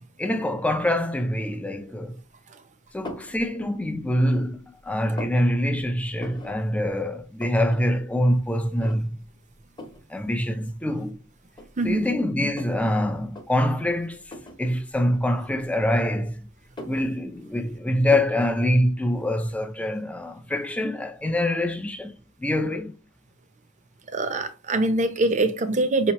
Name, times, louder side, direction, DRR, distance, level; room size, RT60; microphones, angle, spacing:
voice 1, 0.2-2.2 2.9-9.2 10.1-11.2 11.8-14.2 14.6-16.5 16.8-22.1 22.4-22.9, left 1 dB, 5° left, 0.4 m, -25 dB
sound 1, 3.0-3.4 3.9-4.5 4.8-5.4 6.2-6.6 6.9-7.0 7.2-7.8 8.1-8.2 8.8-9.3 9.8-10.0 10.9-11.0 11.5-12.8 13.2-13.5 14.2-14.6 15.6-16.2 16.6-17.6 18.1-18.4, left 1 dB, 25° left, 0.8 m, -39 dB
voice 2, 11.8-12.1 24.1-26.1, right 2 dB, 35° right, 0.6 m, -23 dB
5.1 x 2.9 x 2.9 m
head